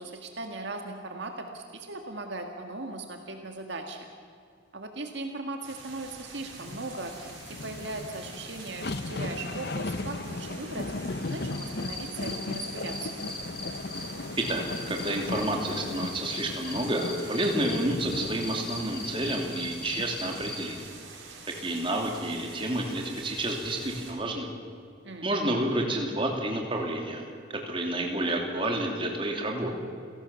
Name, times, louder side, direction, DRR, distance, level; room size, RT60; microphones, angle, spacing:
voice 1, 0.0-4.1 4.7-7.1 7.5-10.9 11.3-13.2 25.0-25.3, right 2 dB, 65° right, 4 dB, 1.9 m, -38 dB
sound 1, 5.6-24.1, right 4 dB, 85° right, 5.4 m, -47 dB
sound 2, 6.5-21.0 21.4-21.5, left 2 dB, 55° left, 0.8 m, -37 dB
Cricket, 11.2-14.0 14.4-17.8 18.1-20.6, left 4 dB, 25° left, 3.7 m, -39 dB
voice 2, 14.4-20.8 21.6-24.5 25.2-27.2 27.5-29.7, right 1 dB, 25° right, 1 dB, 3.2 m, -30 dB
29.5 x 17.5 x 7.1 m, 2.3 s
head